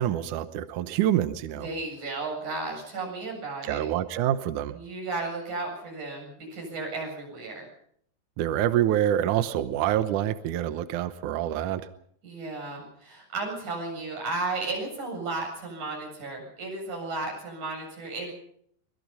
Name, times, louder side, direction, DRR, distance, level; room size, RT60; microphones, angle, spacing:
voice 1, 0.0-1.7 3.7-4.8 8.4-11.8, right 11 dB, 80° right, 11 dB, 1.8 m, -26 dB
voice 2, 1.6-3.9 4.7-7.7 12.2-18.3, right 3 dB, 45° right, 0 dB, 9.0 m, -34 dB
24.5 x 21.0 x 5.6 m, 0.67 s
omnidirectional pair, 4.9 m